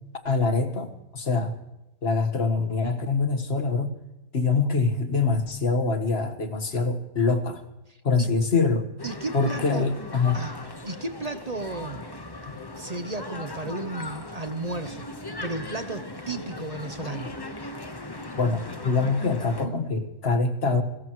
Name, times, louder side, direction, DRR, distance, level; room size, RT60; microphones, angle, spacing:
voice 1, 0.3-1.5 2.0-3.9 4.3-7.6 8.0-8.9 9.3-10.4 17.2-17.3 18.4-20.8, left 4 dB, 45° left, 7 dB, 1.7 m, -24 dB
voice 2, 7.9-8.3 9.0-9.9 10.3-10.5 10.8-12.1 12.8-15.1 15.4-17.3, right 2 dB, 35° right, 9 dB, 0.7 m, -34 dB
sound 1, 9.0-19.7, left 2 dB, 15° left, 1.1 m, -38 dB
30.0 x 14.5 x 3.1 m, 0.95 s
omnidirectional pair, 1.6 m